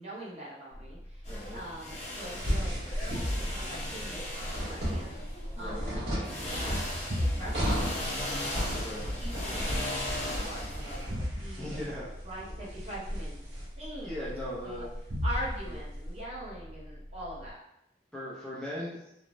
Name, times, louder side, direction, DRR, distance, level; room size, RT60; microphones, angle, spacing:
voice 1, 0.0-2.7 3.5-6.7 7.4-8.5 9.1-11.9 12.2-14.3 14.6-14.9 15.2-17.5, equal, 35° right, -6 dB, 0.8 m, -43 dB
sound 1, 0.7-17.5, equal, 65° right, 0.6 m, -40 dB
sound 2, 1.2-5.9 6.2-11.1, left 1 dB, 35° left, 0.8 m, -37 dB
voice 2, 1.3-1.6 5.6-5.8 8.8-9.0 9.5-9.9 11.6-12.1 14.0-15.0 15.7-15.8 18.1-19.0, left 1 dB, 5° left, -9 dB, 0.5 m, -39 dB
sound 3, 2.4-16.1, equal, 85° right, 1.4 m, -35 dB
3.1 x 2.1 x 2.5 m, 0.80 s
head